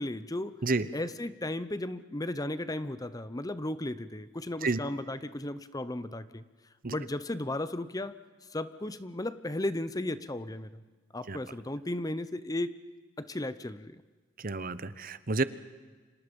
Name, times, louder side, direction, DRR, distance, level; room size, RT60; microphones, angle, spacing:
voice 1, 0.0-0.5 0.9-6.4 6.9-8.1 8.5-10.8 11.1-12.8 13.2-14.0, left 1 dB, 20° left, 13 dB, 0.8 m, -35 dB
voice 2, 14.4-15.4, right 3 dB, 45° right, 14 dB, 1.0 m, -29 dB
30.0 x 26.5 x 5.4 m, 1.4 s
head